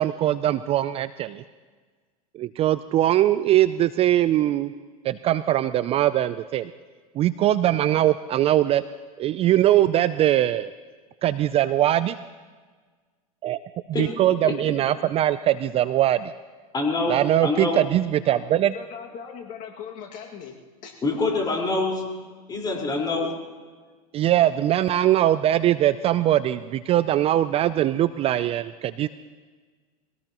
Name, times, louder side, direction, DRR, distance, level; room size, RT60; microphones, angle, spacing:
voice 1, 0.0-1.4 2.3-4.7 5.0-6.7 7.2-8.8 9.2-10.7 11.2-12.2 13.4-13.6 13.9-16.3 17.1-18.7 24.1-29.1, right 12 dB, 30° right, 14 dB, 0.4 m, -21 dB
voice 2, 16.7-17.2 17.4-17.8 21.0-22.0 22.5-23.3, left 3 dB, 20° left, -1 dB, 4.4 m, -25 dB
voice 3, 18.7-20.9, left 7 dB, 45° left, 0 dB, 2.1 m, -39 dB
23.5 x 17.5 x 3.0 m, 1.4 s
hypercardioid pair, 105°, 19 cm